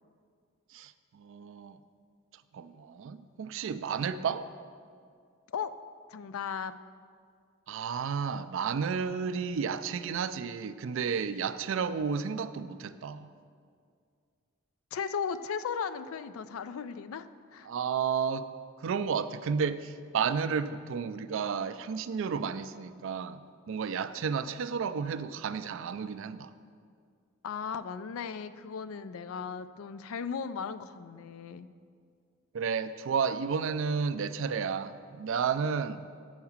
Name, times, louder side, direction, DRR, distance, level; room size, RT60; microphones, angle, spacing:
voice 1, 0.7-1.8 2.5-4.5 7.7-13.3 17.6-18.5 18.8-26.5 32.5-36.0, right 6 dB, 65° right, 13 dB, 0.4 m, -32 dB
voice 2, 6.1-6.7 14.9-17.7 27.4-31.7, left 6 dB, 80° left, 13 dB, 0.4 m, -36 dB
8.0 x 4.7 x 7.2 m, 2.2 s
head